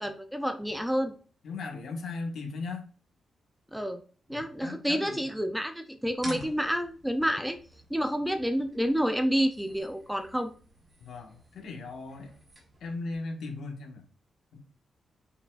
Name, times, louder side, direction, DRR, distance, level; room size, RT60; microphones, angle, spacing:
voice 1, 0.0-1.1 3.7-4.0 4.3-7.6 7.9-10.5, equal, ahead, 7 dB, 0.6 m, -29 dB
voice 2, 1.4-2.9 4.3-5.2 6.2-6.4 11.0-12.3 12.8-14.0 14.5-14.6, left 3 dB, 75° left, 3 dB, 1.6 m, -38 dB
sound 1, 6.1-13.1, right 1 dB, 25° right, 2.8 m, -51 dB
7.1 x 5.5 x 2.5 m, 0.41 s
wide cardioid pair, 150°, 0 cm